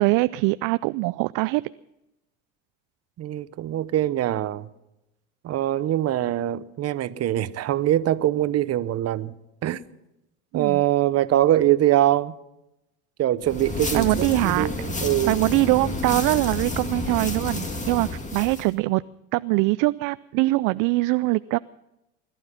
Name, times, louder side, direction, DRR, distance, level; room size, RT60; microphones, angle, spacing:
voice 1, 0.0-1.6 10.5-10.8 13.9-14.9 15.3-19.0 19.3-21.6, right 22 dB, 65° right, 0.5 m, -23 dB
voice 2, 3.2-4.7 5.4-9.3 9.6-9.8 10.5-12.3 13.2-15.4, right 13 dB, 45° right, 0.9 m, -23 dB
sound 1, 13.4-18.7, left 2 dB, 20° left, 2.1 m, -30 dB
21.0 x 12.0 x 5.7 m
supercardioid pair, 95°, 35 cm